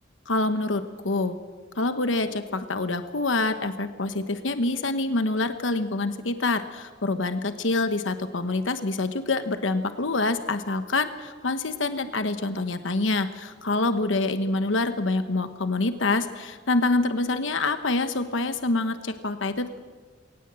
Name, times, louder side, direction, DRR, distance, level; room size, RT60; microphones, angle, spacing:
voice 1, 0.3-1.4 1.8-19.8, left 2 dB, 80° left, 9 dB, 1.1 m, -26 dB
21.0 x 18.5 x 7.7 m, 1.5 s
head